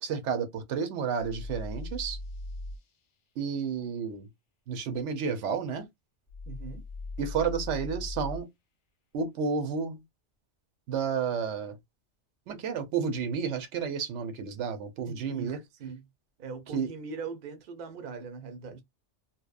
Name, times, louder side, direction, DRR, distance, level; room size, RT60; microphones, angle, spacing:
voice 1, 0.0-2.2 3.4-4.3 4.7-5.9 7.2-8.5 9.1-10.0 10.9-11.8 12.5-15.6 16.7-16.9, right 6 dB, 80° right, 0.9 m, -31 dB
sound 1, 1.2-2.8 6.3-8.4, left 2 dB, 55° left, 0.7 m, -39 dB
voice 2, 6.5-6.9 15.0-16.0 16.4-18.8, right 5 dB, 55° right, 0.7 m, -41 dB
2.8 x 2.0 x 2.3 m
omnidirectional pair, 1.2 m